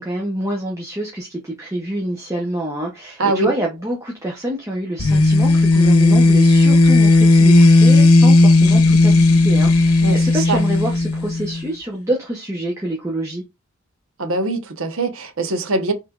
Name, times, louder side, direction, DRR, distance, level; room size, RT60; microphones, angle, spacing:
voice 1, 0.0-13.4, right 1 dB, 15° right, 0.8 m, -26 dB
sound 1, 5.0-11.6, left 2 dB, 85° left, 0.8 m, -13 dB
voice 2, 10.0-10.6 14.2-15.9, right 3 dB, 70° right, 1.0 m, -22 dB
5.6 x 3.3 x 2.4 m
head